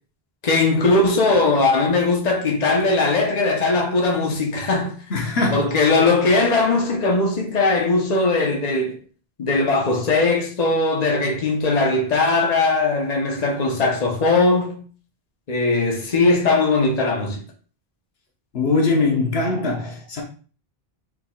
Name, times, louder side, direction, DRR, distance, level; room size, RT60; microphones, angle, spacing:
voice 1, 0.4-4.9 5.5-9.0 9.4-14.8 15.5-17.4, left 3 dB, 40° left, 1.0 m, -19 dB
voice 2, 5.1-5.8 18.5-20.2, left 3 dB, 75° left, 1.2 m, -21 dB
4.4 x 4.4 x 2.3 m
omnidirectional pair, 1.0 m